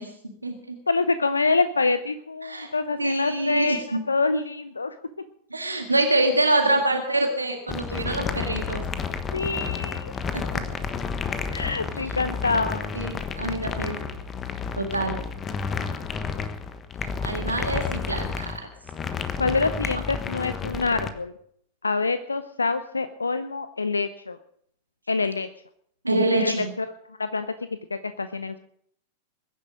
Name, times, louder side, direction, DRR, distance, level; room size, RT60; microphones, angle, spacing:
voice 1, 0.0-0.8 2.4-2.7 3.0-4.0 5.5-8.8 10.7-10.8 12.9-14.0 14.8-15.2 17.2-18.7 26.0-26.7, right 2 dB, 85° right, 4 dB, 1.7 m, -25 dB
voice 2, 0.9-5.0 9.3-10.2 11.5-13.0 19.4-21.3 21.8-24.4 25.1-25.5 26.4-27.5 27.9-28.6, left 4 dB, 80° left, 12 dB, 0.6 m, -26 dB
sound 1, 7.7-21.1, left 5 dB, 20° left, 1.3 m, -31 dB
21.5 x 10.0 x 5.1 m, 0.68 s
figure-of-eight pair, 90°, 0 cm